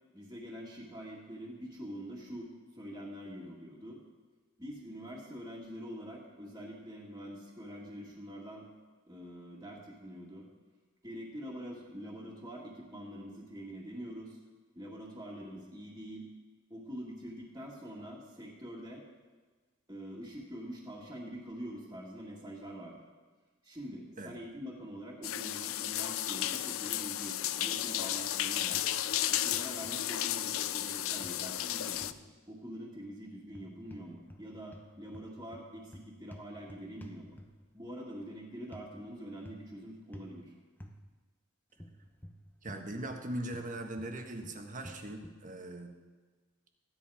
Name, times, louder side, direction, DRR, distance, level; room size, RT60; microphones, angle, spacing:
voice 1, 0.1-2.5 2.7-4.0 4.6-8.7 9.1-10.5 11.0-14.4 14.8-16.3 16.7-19.0 19.9-23.1 23.6-28.8 29.2-32.2 32.5-37.4 37.7-40.5, equal, 15° right, -7 dB, 2.2 m, -45 dB
sound 1, 25.2-32.1, left 12 dB, 75° left, 0.5 m, -33 dB
sound 2, 28.7-29.2 29.5-30.0 31.2-32.2 33.5-34.5 34.7-37.7 38.7-38.9 39.4-39.7 40.1-40.4 40.8-41.0 41.8-43.3 43.5-45.4, equal, 10° left, 0.9 m, -51 dB
voice 2, 42.6-46.0, right 1 dB, 40° right, 4 dB, 1.4 m, -40 dB
15.0 x 10.5 x 5.0 m, 1.4 s
head